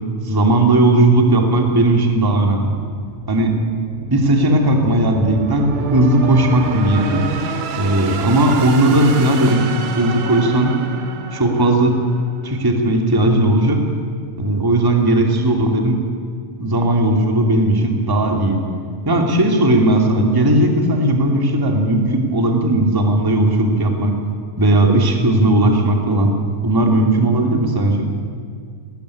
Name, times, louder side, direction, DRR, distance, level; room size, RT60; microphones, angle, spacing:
voice 1, 0.2-2.8 3.3-3.5 4.1-7.3 7.7-9.6 10.0-10.7 11.3-12.0 12.4-13.8 14.4-16.0 16.6-18.6 19.1-24.1 24.6-26.3 26.6-28.1, right 1 dB, 10° right, 2 dB, 2.1 m, -16 dB
sound 1, 2.4-12.6, right 5 dB, 65° right, 2.8 m, -29 dB
19.5 x 19.0 x 9.9 m, 2.1 s
omnidirectional pair, 3.7 m